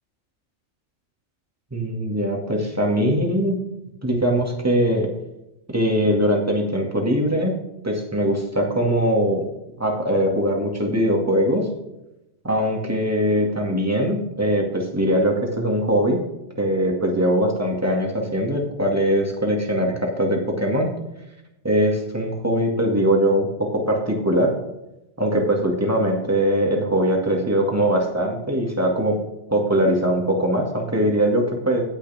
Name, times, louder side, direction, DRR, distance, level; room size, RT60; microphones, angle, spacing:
voice 1, 1.7-3.6 4.0-5.1 5.7-7.6 7.8-9.5 9.8-11.7 12.4-16.2 16.6-20.9 21.6-24.5 25.2-29.2 29.5-31.8, equal, 10° right, 0 dB, 2.3 m, -21 dB
18.0 x 6.5 x 3.6 m, 0.91 s
omnidirectional pair, 1.2 m